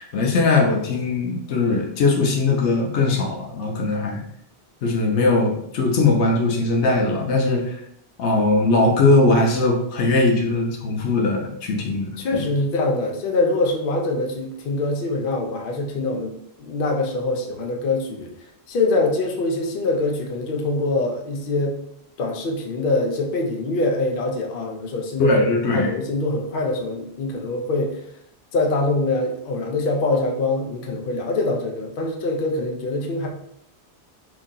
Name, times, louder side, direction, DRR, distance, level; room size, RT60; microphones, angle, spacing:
voice 1, 0.0-4.2 4.8-7.8 8.2-12.4 25.2-25.9, left 3 dB, 90° left, 1 dB, 1.0 m, -20 dB
voice 2, 12.2-16.3 16.6-18.3 18.7-21.8 22.2-28.0 28.5-33.3, left 2 dB, 60° left, 1 dB, 0.7 m, -24 dB
2.9 x 2.7 x 3.7 m, 0.72 s
omnidirectional pair, 1.1 m